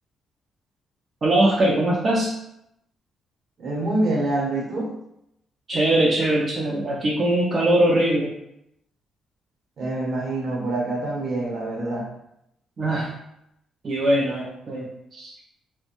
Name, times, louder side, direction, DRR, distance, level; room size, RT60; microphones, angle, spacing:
voice 1, 1.2-2.3 5.7-8.3 12.8-13.1 13.8-15.3, right 1 dB, 40° right, -3 dB, 0.4 m, -21 dB
voice 2, 3.6-4.9 9.8-12.1, right 2 dB, 55° right, -3 dB, 0.9 m, -26 dB
2.4 x 2.1 x 2.9 m, 0.80 s
cardioid pair, 105°, 0 cm